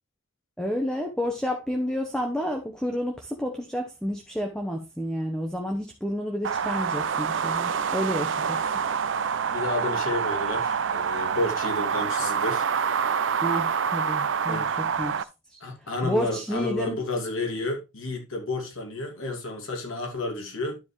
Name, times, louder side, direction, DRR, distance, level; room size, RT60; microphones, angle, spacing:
voice 1, 0.6-8.6 13.4-15.1 15.5-15.6 16.0-17.0, equal, 5° left, 1.0 m, -30 dB
sound 1, 6.4-15.2, right 6 dB, 65° right, 0.5 m, -27 dB
voice 2, 9.5-12.7 14.5-14.7 15.6-20.8, left 2 dB, 85° left, 2.3 m, -31 dB
12.0 x 4.9 x 3.2 m
head